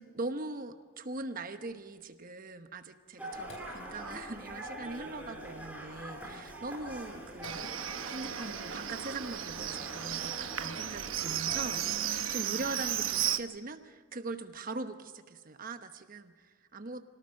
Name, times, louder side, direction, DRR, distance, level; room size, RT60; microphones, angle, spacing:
voice 1, 0.0-7.8 8.1-17.0, right 2 dB, 40° right, 8 dB, 1.1 m, -41 dB
sound 1, 3.2-12.0, right 1 dB, 5° right, 5.0 m, -45 dB
Sink (filling or washing), 3.3-13.3, left 1 dB, 65° left, 5.1 m, -54 dB
Livestock farm animals working animals, 7.4-13.4, right 10 dB, 70° right, 1.0 m, -34 dB
26.0 x 18.5 x 6.5 m, 1.5 s
head